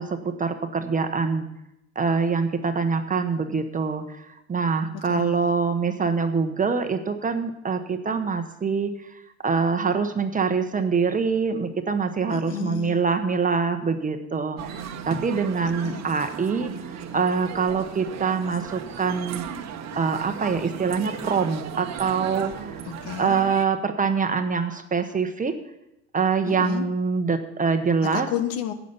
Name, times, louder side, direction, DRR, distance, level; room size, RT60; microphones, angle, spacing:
voice 1, 0.0-1.5 1.9-19.5 20.0-22.8 23.2-25.6 26.1-28.3, right 5 dB, 20° right, 8 dB, 1.1 m, -25 dB
voice 2, 4.9-5.5 12.3-13.0 15.8-16.0 22.8-23.4 26.4-26.9 28.0-28.7, left 10 dB, 65° left, 11 dB, 1.2 m, -32 dB
sound 1, 14.6-23.6, right 8 dB, 40° right, 1.1 m, -36 dB
11.5 x 8.5 x 5.6 m, 0.87 s
hypercardioid pair, 85°, 39 cm